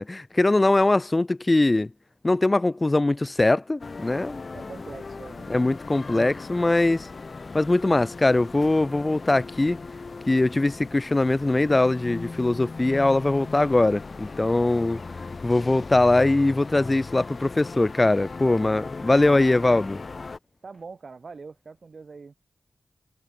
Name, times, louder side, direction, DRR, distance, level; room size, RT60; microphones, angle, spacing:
voice 1, 0.0-1.9 2.2-4.4 5.5-7.1 7.5-9.8 10.3-15.0 15.4-20.0, left 2 dB, 25° left, 0.7 m, -21 dB
sound 1, 3.8-20.4, left 4 dB, 50° left, 6.8 m, -38 dB
voice 2, 4.5-5.8 20.6-22.3, right 4 dB, 55° right, 4.8 m, -43 dB
wide cardioid pair, 90°, 0 cm